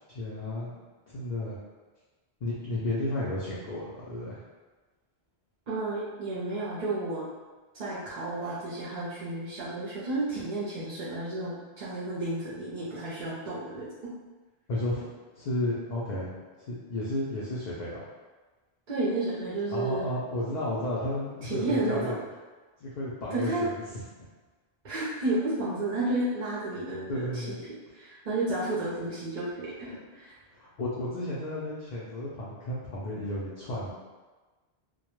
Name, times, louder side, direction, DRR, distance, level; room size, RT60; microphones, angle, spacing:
voice 1, 0.1-0.7 1.1-1.6 2.4-4.4 14.7-15.1 15.4-16.4 16.7-18.1 19.7-22.2 22.8-23.7 24.2-24.3 27.1-27.6 29.9-30.0 30.5-33.9, left 1 dB, 55° left, -8 dB, 0.5 m, -33 dB
voice 2, 5.7-7.3 7.7-14.1 18.9-20.1 21.4-22.2 23.3-23.6 24.8-27.6 27.9-30.3, right 2 dB, 50° right, -8 dB, 0.6 m, -32 dB
2.2 x 2.1 x 2.9 m, 1.3 s
omnidirectional pair, 1.1 m